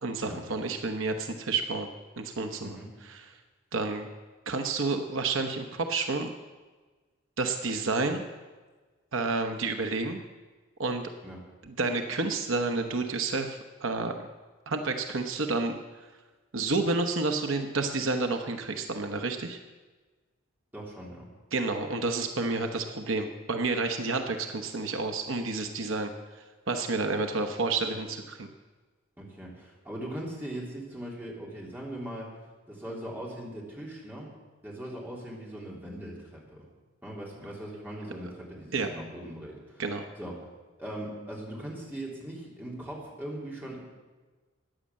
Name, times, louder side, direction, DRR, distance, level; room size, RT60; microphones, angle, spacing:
voice 1, 0.0-1.9 2.2-2.8 3.0-3.2 3.7-4.1 4.5-6.3 7.4-8.2 9.1-10.2 10.8-11.1 11.6-14.1 14.7-15.8 16.5-19.6 21.5-26.1 26.7-28.5 38.7-38.9 39.8-40.1, right 3 dB, 70° right, 6 dB, 1.0 m, -30 dB
voice 2, 20.7-21.2 29.2-32.3 32.7-34.3 34.6-36.7 37.0-39.8 40.2-40.5 40.8-43.8, right 1 dB, 10° right, -4 dB, 3.5 m, -40 dB
14.0 x 9.8 x 7.5 m, 1.3 s
head